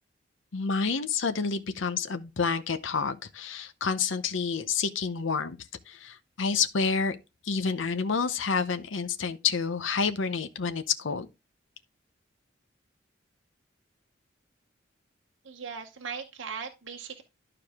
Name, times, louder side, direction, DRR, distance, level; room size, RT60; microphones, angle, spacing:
voice 1, 0.5-5.6 5.9-7.2 7.4-11.3, left 5 dB, 80° left, 0.8 m, -29 dB
voice 2, 15.4-17.2, right 6 dB, 75° right, 0.9 m, -38 dB
12.0 x 4.8 x 3.5 m
head